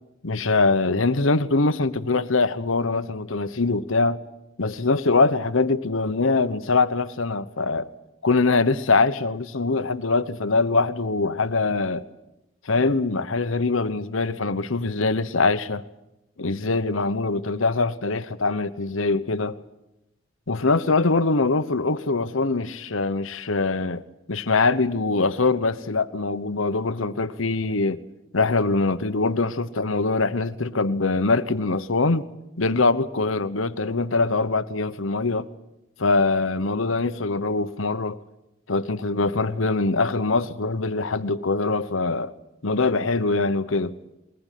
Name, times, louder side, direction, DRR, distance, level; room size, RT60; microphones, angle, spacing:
voice 1, 0.2-4.2 4.6-7.9 8.2-12.1 12.6-15.8 16.4-19.6 20.5-24.0 24.3-28.0 28.3-32.3 32.6-35.5 36.0-38.2 38.7-42.3 42.6-44.0, left 3 dB, 80° left, 1.1 m, -23 dB
22.0 x 19.0 x 9.3 m
head